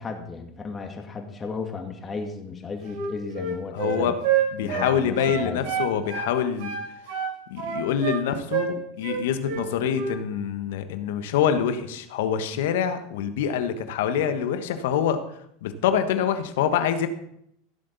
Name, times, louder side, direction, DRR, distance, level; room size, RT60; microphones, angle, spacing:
voice 1, 0.0-4.2 4.6-5.6, left 4 dB, 25° left, 4 dB, 2.2 m, -34 dB
Wind instrument woodwind instrument, 2.8-6.3 6.6-8.2 8.5-8.7 9.0-9.7 9.9-10.2, right 7 dB, 65° right, 3.6 m, -27 dB
voice 2, 3.7-4.1 4.5-6.7 7.5-15.2 15.6-17.1, left 8 dB, 75° left, 9 dB, 1.2 m, -25 dB
15.5 x 7.7 x 4.0 m, 0.73 s
hypercardioid pair, 95°, 0 cm